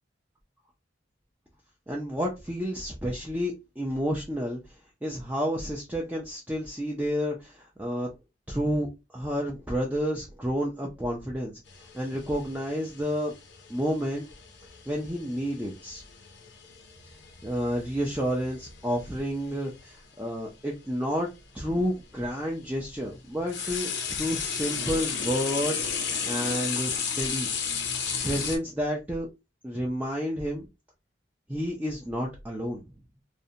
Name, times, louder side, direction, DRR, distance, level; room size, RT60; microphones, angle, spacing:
voice 1, 1.9-4.6 5.0-8.1 8.5-11.5 11.9-13.3 13.7-14.2 14.9-16.0 17.4-21.3 21.5-27.5 28.2-29.3 29.6-30.7 31.5-32.8, equal, 10° right, -2 dB, 0.4 m, -30 dB
sound 1, 11.7-19.8 20.9-21.0 21.8-28.6, left 6 dB, 75° left, 0.6 m, -34 dB
2.5 x 2.1 x 2.7 m, 0.25 s
head